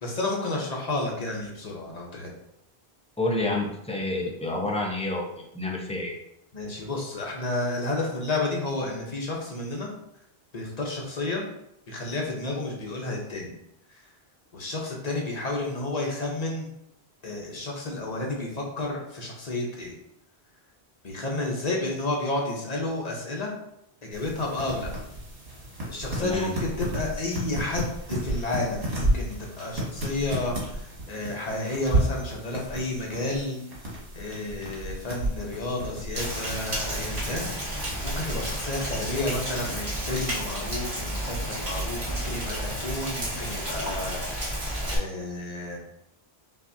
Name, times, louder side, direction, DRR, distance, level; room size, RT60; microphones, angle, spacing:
voice 1, 0.0-2.3 6.5-9.9 10.5-11.4 11.9-13.6 14.5-16.7 17.2-20.0 21.0-23.5 24.1-24.9 25.9-30.8 31.1-33.6 34.1-44.2 44.9-45.8, left 2 dB, 40° left, -1 dB, 1.0 m, -31 dB
voice 2, 3.2-5.2 5.5-6.1 26.2-26.5, left 2 dB, 10° left, 0 dB, 0.4 m, -28 dB
sound 1, 24.1-38.5, right 1 dB, 70° right, 1.7 m, -32 dB
Rain, 36.1-45.0, right 1 dB, 30° right, 1.2 m, -31 dB
5.8 x 2.6 x 2.7 m, 0.78 s
omnidirectional pair, 1.1 m